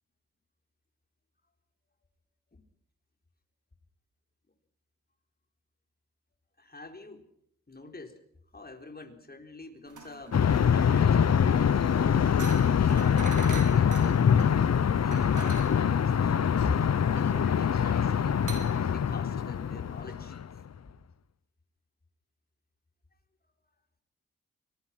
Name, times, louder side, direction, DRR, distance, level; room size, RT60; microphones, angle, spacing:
voice 1, 6.6-7.3 7.7-8.2 8.5-12.2 12.8-16.8 17.1-20.3, left 3 dB, 30° left, 4 dB, 4.2 m, -44 dB
sound 1, 9.9-19.9, right 5 dB, 80° right, 5.2 m, -44 dB
sound 2, 10.3-20.6, left 7 dB, 60° left, 0.8 m, -24 dB
24.5 x 20.5 x 6.0 m, 0.70 s
cardioid pair, 50°, 30 cm